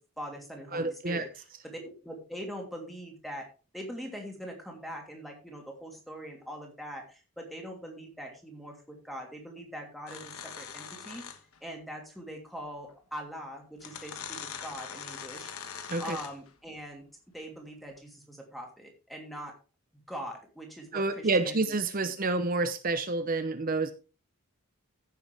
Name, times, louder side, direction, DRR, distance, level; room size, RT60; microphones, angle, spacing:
voice 1, 0.2-1.3 1.6-3.5 3.7-11.3 11.6-15.5 16.0-17.1 17.3-19.5 20.1-21.7 22.0-22.1, equal, ahead, 1 dB, 2.8 m, -42 dB
voice 2, 0.7-1.2 15.9-16.2 20.9-23.9, right 3 dB, 40° right, 9 dB, 0.8 m, -28 dB
sound 1, 10.1-11.6 12.9-13.0 13.8-16.5, left 7 dB, 75° left, 1.3 m, -42 dB
15.5 x 6.9 x 3.5 m, 0.33 s
head